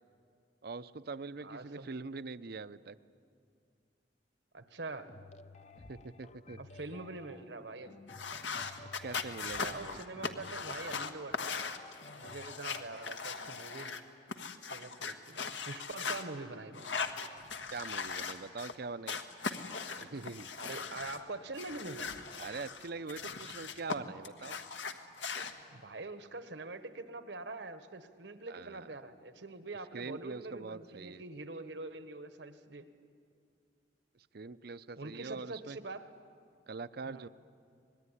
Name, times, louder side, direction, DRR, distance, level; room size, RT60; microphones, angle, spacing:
voice 1, 0.6-3.0 5.9-6.6 8.8-10.0 17.7-19.2 20.0-20.5 22.4-24.6 28.5-28.9 29.9-31.2 34.1-35.8 36.7-37.3, right 4 dB, 60° right, 15 dB, 0.6 m, -43 dB
voice 2, 1.4-1.9 4.5-5.1 6.6-7.9 9.6-11.6 12.1-14.0 14.7-16.9 20.6-22.1 25.7-32.9 35.0-36.0 37.0-37.3, right 2 dB, 75° right, 10 dB, 1.4 m, -44 dB
sound 1, 5.1-13.0, left 3 dB, 40° left, 0.7 m, -54 dB
sound 2, 8.1-14.0 14.3-16.2 16.7-18.7 19.1-21.2 21.5-24.0 24.2-25.5, left 5 dB, 85° left, 1.4 m, -39 dB
25.5 x 20.0 x 10.0 m, 2.3 s
head